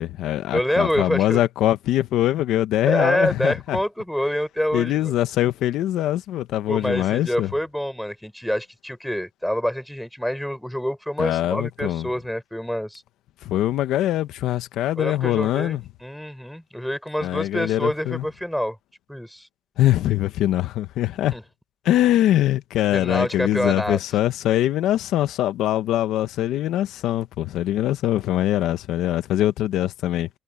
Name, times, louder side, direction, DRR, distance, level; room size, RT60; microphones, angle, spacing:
voice 1, 0.0-3.8 4.7-7.5 11.2-12.1 13.4-15.8 17.2-18.2 19.8-21.4 21.8-30.3, left 13 dB, 80° left, 1.3 m, -23 dB
voice 2, 0.5-1.4 2.9-5.1 6.7-13.0 15.0-18.8 19.1-19.5 21.3-21.4 22.9-24.0, equal, ahead, 7.2 m, -26 dB
cardioid pair, 75°, 0 cm